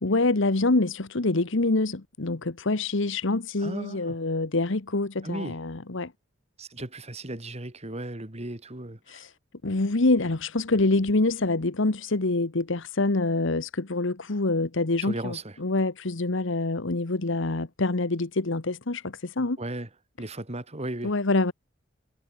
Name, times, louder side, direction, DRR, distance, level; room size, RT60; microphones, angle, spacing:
voice 1, 0.0-6.1 9.1-9.3 9.6-19.6 21.0-21.5, left 2 dB, 65° left, 1.3 m, -26 dB
voice 2, 3.6-4.2 5.2-5.6 6.6-9.2 15.0-15.6 19.6-19.9 20.2-21.1, right 1 dB, 30° right, 2.5 m, -36 dB
head